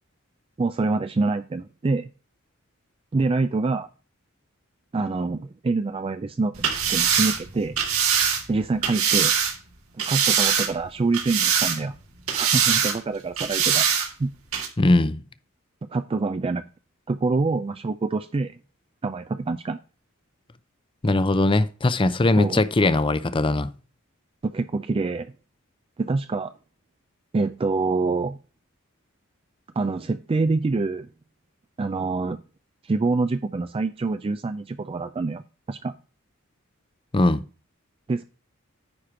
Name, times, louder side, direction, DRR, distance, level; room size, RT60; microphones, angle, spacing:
voice 1, 0.6-2.1 3.1-3.9 4.9-7.8 8.5-9.3 10.0-11.9 12.3-14.3 15.9-16.6 17.1-18.6 19.0-19.8 22.4-22.6 24.4-25.3 26.0-26.5 27.3-28.4 29.8-31.1 31.8-32.4 32.8-35.4 35.7-36.0 38.1-38.2, right 3 dB, 25° right, 0.3 m, -26 dB
sound 1, 6.5-9.5 10.0-10.8 11.1-12.0 12.3-13.0 13.4-14.1 14.5-14.7, right 8 dB, 90° right, 2.2 m, -22 dB
voice 2, 14.8-15.2 21.0-23.7 37.1-37.4, left 2 dB, 25° left, 0.6 m, -20 dB
9.8 x 4.5 x 4.8 m
head